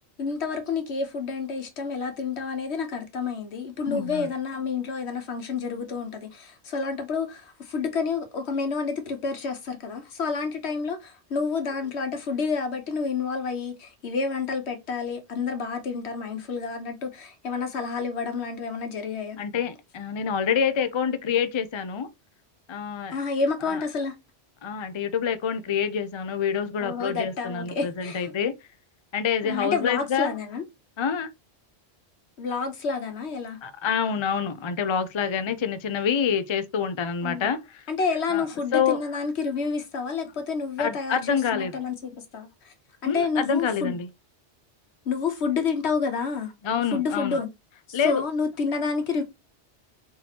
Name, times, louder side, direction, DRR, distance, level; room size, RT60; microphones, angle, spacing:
voice 1, 0.2-19.4 23.1-24.1 26.8-28.3 29.4-30.6 32.4-33.6 37.2-37.5 37.9-42.7 43.0-43.9 45.1-46.5 46.9-47.5 47.9-49.2, left 5 dB, 70° left, 1.3 m, -29 dB
voice 2, 3.9-4.3 19.4-22.1 22.7-23.2 23.6-23.8 24.6-28.5 29.1-30.3 31.0-31.3 33.6-37.9 38.3-38.5 38.7-39.0 40.8-41.8 43.0-44.1 46.6-47.4 47.9-48.2, left 7 dB, 40° left, 0.4 m, -27 dB
4.1 x 3.7 x 2.8 m
omnidirectional pair, 1.2 m